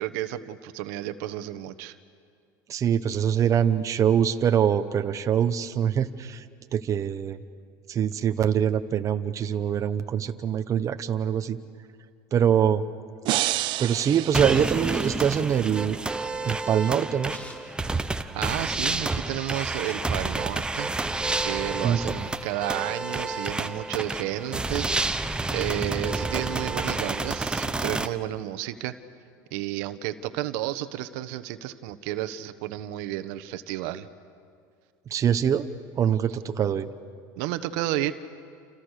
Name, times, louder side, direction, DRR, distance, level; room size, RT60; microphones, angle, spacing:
voice 1, 0.0-1.9 18.2-20.9 21.4-29.0 29.5-34.1 37.4-38.1, right 13 dB, 75° right, 11 dB, 1.2 m, -32 dB
voice 2, 2.7-6.5 6.7-7.4 7.9-11.6 12.3-12.8 13.8-16.0 16.4-17.4 21.8-22.0 35.1-35.7 35.9-36.9, right 8 dB, 35° right, 9 dB, 1.0 m, -24 dB
sound 1, 13.2-15.4, right 16 dB, 55° right, 0.8 m, -29 dB
sound 2, 14.3-28.1, right 2 dB, 10° right, 1.1 m, -29 dB
sound 3, 17.3-18.7 19.1-19.2 19.3-20.6 21.0-22.1, left 1 dB, 15° left, 4.4 m, -50 dB
29.5 x 29.0 x 6.6 m, 2.3 s
supercardioid pair, 120°, 10 cm